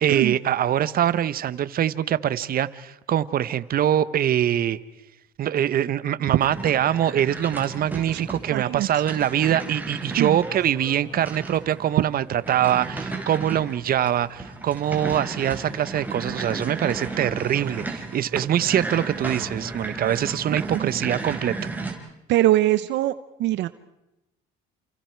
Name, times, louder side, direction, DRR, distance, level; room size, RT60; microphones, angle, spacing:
voice 1, 0.0-4.8 5.4-21.5, right 10 dB, 50° right, 15 dB, 1.1 m, -23 dB
Subway metro underground, 6.3-18.0, equal, 20° left, 5.0 m, -53 dB
sound 1, 6.4-21.9, right 3 dB, 10° right, 5.3 m, -34 dB
voice 2, 8.5-8.9 10.2-10.4 20.7-20.9 22.3-23.1 23.4-23.7, right 15 dB, 70° right, 14 dB, 0.9 m, -22 dB
29.5 x 28.0 x 4.7 m, 0.92 s
cardioid pair, 95°, 19 cm